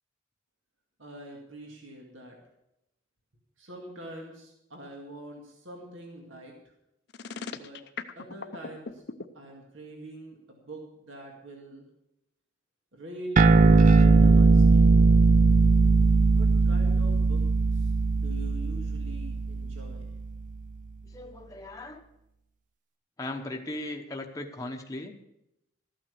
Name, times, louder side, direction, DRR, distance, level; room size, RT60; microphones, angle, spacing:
voice 1, 1.0-2.4 3.6-6.5 7.4-7.8 8.1-9.0 9.3-11.9 12.9-15.0 16.3-17.5 17.7-20.1, right 1 dB, 75° right, 0 dB, 2.2 m, -44 dB
sound 1, 7.1-9.2, left 5 dB, 55° left, 0.7 m, -38 dB
sound 2, 13.4-20.2, right 3 dB, 40° right, 0.4 m, -20 dB
voice 2, 21.1-22.0 23.2-25.1, left 1 dB, 15° left, 2 dB, 0.9 m, -37 dB
13.5 x 8.9 x 6.9 m, 0.84 s
head